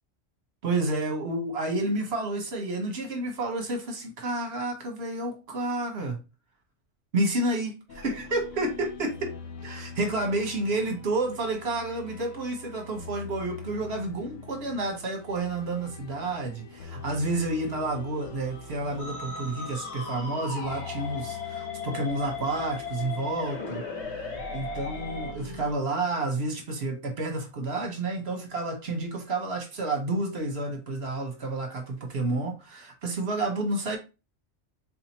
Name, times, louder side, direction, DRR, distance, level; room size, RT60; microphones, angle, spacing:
voice 1, 0.6-6.2 7.1-9.3 9.6-34.0, right 2 dB, 55° right, 1.2 m, -30 dB
sound 1, 7.9-25.7, left 4 dB, 90° left, 1.0 m, -43 dB
Musical instrument, 19.0-25.3, left 5 dB, 65° left, 1.2 m, -37 dB
4.1 x 2.8 x 2.9 m
omnidirectional pair, 1.3 m